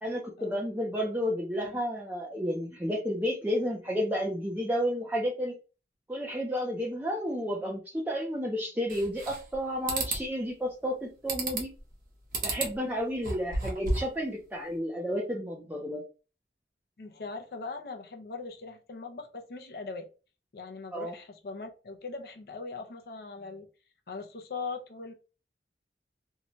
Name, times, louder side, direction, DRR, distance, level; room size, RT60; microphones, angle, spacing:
voice 1, 0.0-5.5 6.1-11.7 12.4-16.0 20.9-21.1, equal, 10° right, 0.5 m, -31 dB
sound 1, 8.9-9.6 9.9-10.2 11.3-11.8 12.3-12.7 13.1-14.2, right 2 dB, 50° right, 0.8 m, -32 dB
voice 2, 17.0-20.1 20.5-23.7 24.1-25.1, left 4 dB, 55° left, 0.5 m, -40 dB
2.7 x 2.2 x 2.8 m
head